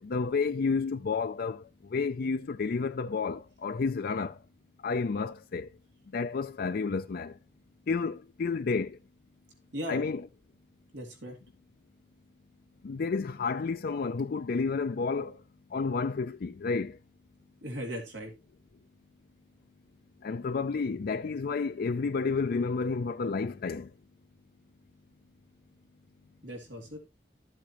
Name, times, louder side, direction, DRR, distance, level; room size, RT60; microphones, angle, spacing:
voice 1, 0.0-4.4 4.8-5.7 6.1-7.4 7.9-9.0 9.9-10.2 12.8-15.4 15.7-17.0 20.2-23.9, left 4 dB, 55° left, 0.4 m, -31 dB
voice 2, 9.7-10.0 10.9-11.4 17.6-18.3 26.4-27.0, equal, 90° right, 3.2 m, -37 dB
12.5 x 7.8 x 3.0 m
head